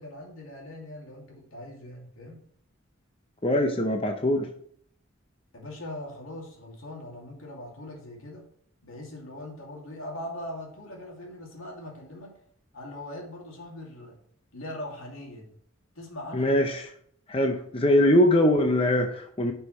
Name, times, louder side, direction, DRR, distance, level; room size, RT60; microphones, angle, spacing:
voice 1, 0.0-2.4 5.5-8.5 8.8-12.3 12.7-14.2 14.5-15.5 15.9-16.5, left 1 dB, 80° left, -1 dB, 2.7 m, -41 dB
voice 2, 3.4-4.5 16.3-16.9 17.3-19.5, left 1 dB, 25° left, 4 dB, 0.7 m, -22 dB
10.5 x 5.5 x 3.2 m, 0.64 s
head